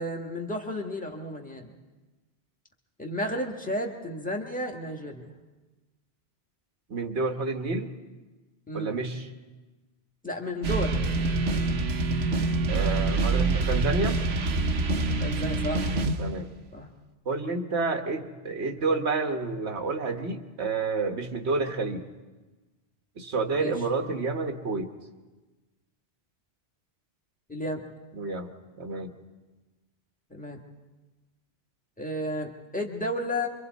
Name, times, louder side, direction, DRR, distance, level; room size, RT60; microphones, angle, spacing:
voice 1, 0.0-1.7 3.0-5.3 8.7-8.9 10.2-11.4 15.2-15.9 16.7-16.9 23.6-23.7 27.5-27.8 30.3-30.6 32.0-33.5, left 1 dB, 10° left, 1 dB, 1.5 m, -33 dB
voice 2, 6.9-7.9 8.7-9.3 12.7-14.2 16.2-16.5 17.2-22.0 23.2-24.9 28.2-28.5 28.8-29.1, right 3 dB, 90° right, 5 dB, 1.6 m, -29 dB
sound 1, 10.6-16.6, right 3 dB, 75° right, 1.1 m, -26 dB
27.0 x 23.5 x 4.1 m, 1.2 s
omnidirectional pair, 1.1 m